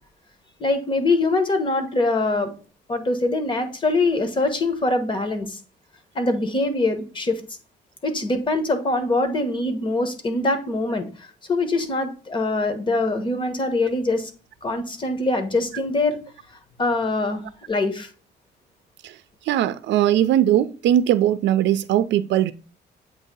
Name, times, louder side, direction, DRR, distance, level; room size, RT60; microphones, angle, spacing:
voice 1, 0.6-2.5 2.9-5.6 6.1-7.4 8.0-14.3 14.6-16.2 16.8-17.4 17.7-18.1, left 2 dB, 25° left, 1.2 m, -23 dB
voice 2, 19.5-22.5, right 11 dB, 90° right, 0.5 m, -19 dB
8.0 x 2.7 x 5.3 m
cardioid pair, 135°, 18 cm